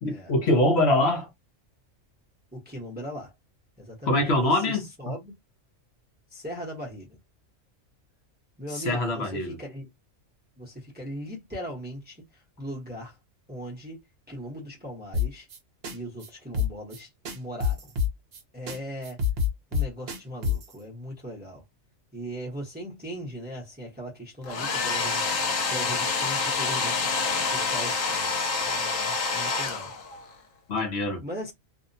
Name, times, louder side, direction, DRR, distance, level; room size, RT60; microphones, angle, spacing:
voice 1, 0.0-1.3 4.1-4.8 8.7-9.6 30.7-31.2, left 1 dB, 60° left, 0.9 m, -24 dB
voice 2, 2.5-3.3 3.8-5.3 6.3-7.2 8.6-9.9 10.6-13.2 13.5-14.0 14.3-15.5 15.9-17.9 18.5-19.2 19.7-21.6 22.1-27.1 27.5-29.9 31.2-31.5, equal, 10° right, 0.7 m, -39 dB
sound 1, 15.1-15.6 15.8-16.0 16.2-16.3 16.5-17.0 17.2-18.4 18.7-18.8 19.0-20.7, left 6 dB, 55° right, 0.9 m, -26 dB
Domestic sounds home sounds, 24.4-30.3, left 4 dB, 90° left, 1.1 m, -27 dB
2.7 x 2.1 x 2.6 m
omnidirectional pair, 1.3 m